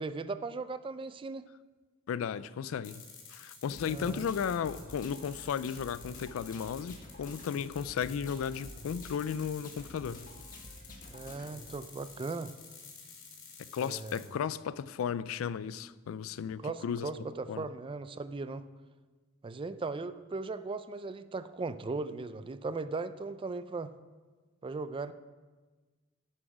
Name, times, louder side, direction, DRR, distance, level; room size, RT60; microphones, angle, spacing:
voice 1, 0.0-1.5 3.9-4.3 11.1-12.5 13.8-14.2 16.6-18.7 19.4-23.9 24.6-25.1, right 3 dB, 25° right, 0.3 m, -38 dB
voice 2, 2.1-3.0 3.3-10.3 13.6-17.1 17.5-17.7, left 7 dB, 85° left, 0.3 m, -35 dB
sound 1, 2.8-14.3, left 6 dB, 60° left, 2.8 m, -51 dB
sound 2, 3.8-11.8, left 1 dB, 40° left, 1.4 m, -49 dB
11.0 x 6.2 x 4.8 m
head